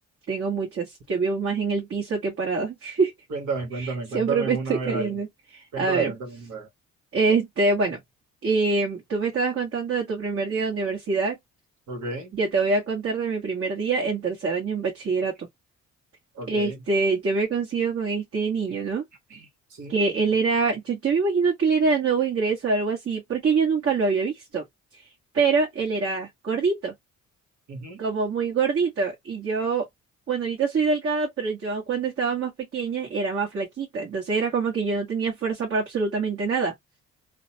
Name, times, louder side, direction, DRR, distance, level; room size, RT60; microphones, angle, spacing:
voice 1, 0.3-3.1 3.7-6.1 7.1-8.0 8.4-11.4 12.3-15.5 16.5-19.0 19.9-24.6 25.3-26.9 28.0-29.9 30.3-36.7, right 4 dB, 50° right, 1.3 m, -25 dB
voice 2, 3.3-5.2 5.7-6.7 11.9-12.3 16.4-16.8 19.3-19.5 19.7-20.0 27.7-28.0, right 3 dB, 70° right, 1.3 m, -32 dB
2.7 x 2.1 x 2.7 m
cardioid pair, 90°, 30 cm